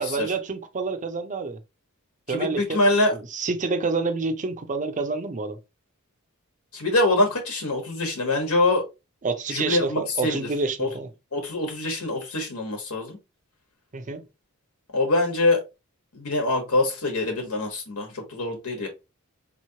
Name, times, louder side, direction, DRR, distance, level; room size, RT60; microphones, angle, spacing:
voice 1, 0.0-1.6 2.3-2.8 3.1-5.6 9.2-11.1 13.9-14.2, right 4 dB, 35° right, 0.6 m, -28 dB
voice 2, 2.3-3.1 6.7-8.8 9.5-10.5 10.8-10.9 11.3-13.2 14.9-15.6 16.1-18.9, left 2 dB, 80° left, 1.2 m, -24 dB
4.0 x 3.0 x 2.8 m
head